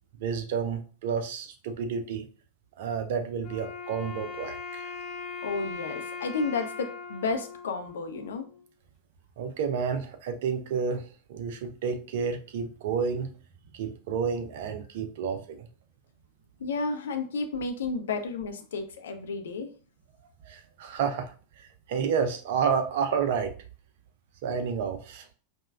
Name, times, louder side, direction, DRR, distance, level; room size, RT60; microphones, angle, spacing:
voice 1, 0.2-2.3 2.8-5.0 9.4-13.3 13.7-15.7 20.4-23.5 24.4-25.3, right 6 dB, 55° right, 7 dB, 0.5 m, -30 dB
Wind instrument woodwind instrument, 3.4-8.6, left 5 dB, 25° left, 1.0 m, -40 dB
voice 2, 5.4-8.5 16.6-19.7, left 4 dB, 65° left, 6 dB, 0.5 m, -32 dB
4.8 x 2.2 x 2.3 m, 0.39 s
figure-of-eight pair, 90°, 0 cm